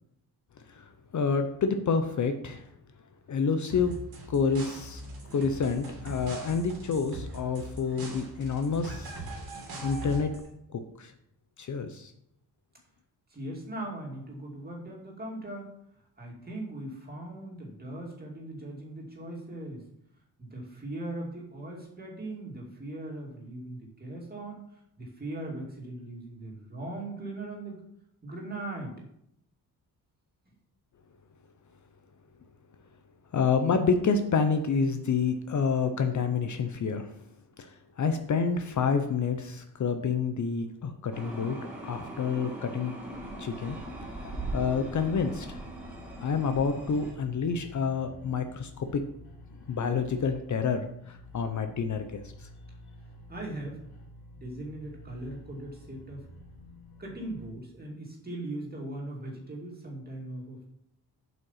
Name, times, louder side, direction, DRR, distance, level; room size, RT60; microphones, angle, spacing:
voice 1, 1.1-2.7 3.3-3.9 4.3-5.0 5.3-9.2 9.8-10.3 10.7-11.1 11.6-12.1 33.3-37.1 37.6-41.6 41.8-42.9 43.4-43.8 44.5-45.6 46.2-49.0 49.7-52.5, left 5 dB, 50° left, 7 dB, 0.7 m, -28 dB
sound 1, 3.7-10.5, right 1 dB, 70° right, 2.7 m, -41 dB
voice 2, 13.3-15.7 16.2-19.8 20.4-24.6 25.0-27.8 28.2-28.9 53.3-53.8 54.3-56.3 57.0-60.6, right 1 dB, 25° right, -2 dB, 2.4 m, -39 dB
sound 2, 41.1-47.1, right 1 dB, 5° right, 2.2 m, -40 dB
sound 3, 43.5-57.5, left 1 dB, 70° left, 2.0 m, -50 dB
7.7 x 5.5 x 5.7 m, 0.75 s
wide cardioid pair, 150°, 39 cm